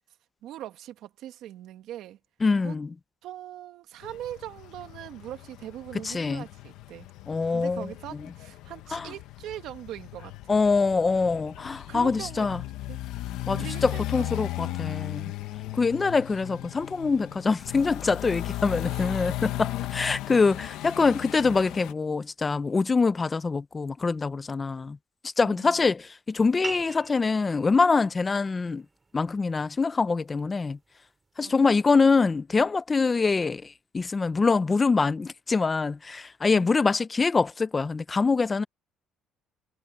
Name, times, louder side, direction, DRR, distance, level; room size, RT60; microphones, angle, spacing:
voice 1, 0.4-2.2 2.6-2.8 3.2-7.1 7.5-10.6 11.9-12.6 12.9-13.0 13.5-14.8 18.9-19.1 25.4-25.8 31.4-31.7 36.5-36.8, right 12 dB, 70° right, 2.0 m, -41 dB
voice 2, 2.4-2.9 6.0-6.4 7.3-7.9 8.9-9.1 10.5-12.6 13.5-15.3 15.7-25.0 25.4-28.8 29.1-30.8 31.4-38.6, left 4 dB, 20° left, 0.6 m, -24 dB
sound 1, 4.0-21.9, left 16 dB, 75° left, 1.2 m, -36 dB
sound 2, 26.6-31.7, right 4 dB, 20° right, 6.6 m, -44 dB
cardioid pair, 140°, 0 cm